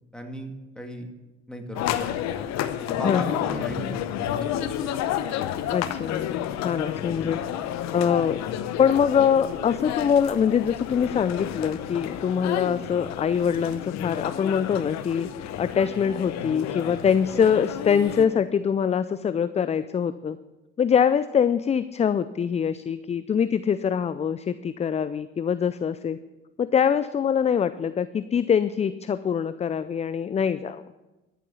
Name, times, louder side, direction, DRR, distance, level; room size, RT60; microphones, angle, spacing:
voice 1, 0.1-1.1 1.5-2.2 2.9-4.7 7.2-7.3, equal, 5° left, 3 dB, 2.3 m, -36 dB
sound 1, 1.7-18.2, left 11 dB, 60° left, 0.9 m, -31 dB
voice 2, 3.0-3.4 5.7-6.2 6.6-7.4 7.9-8.4 8.8-20.4 20.8-26.2 26.6-30.8, left 7 dB, 20° left, 14 dB, 0.4 m, -24 dB
13.0 x 7.0 x 7.4 m, 1.1 s
hypercardioid pair, 55°, 31 cm